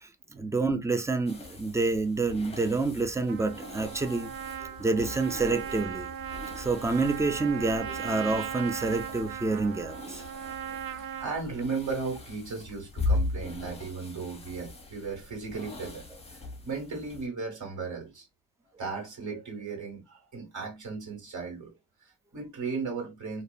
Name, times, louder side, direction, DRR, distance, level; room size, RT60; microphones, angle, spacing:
voice 1, 0.0-4.3 4.8-6.1 6.6-10.2, right 3 dB, 10° right, 0.3 m, -28 dB
sound 1, 1.3-17.3, left 2 dB, 15° left, 0.7 m, -39 dB
Trumpet, 3.3-11.3, right 9 dB, 70° right, 0.5 m, -38 dB
voice 2, 10.3-18.3 18.8-23.4, right 4 dB, 55° right, 1.5 m, -36 dB
2.7 x 2.1 x 2.3 m
cardioid pair, 85°, 36 cm